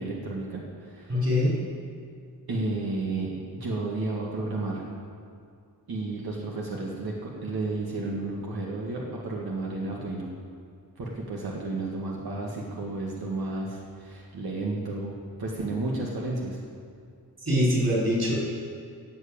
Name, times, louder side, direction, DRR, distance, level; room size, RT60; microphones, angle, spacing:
voice 1, 0.0-1.3 2.5-3.3 3.6-4.9 5.9-10.3 11.0-15.1 15.4-16.6, right 2 dB, 85° right, -3 dB, 2.0 m, -32 dB
voice 2, 1.1-1.5 17.5-18.4, left 1 dB, 45° right, -5 dB, 4.5 m, -23 dB
14.5 x 7.7 x 8.8 m, 2.3 s
wide cardioid pair, 160°, 36 cm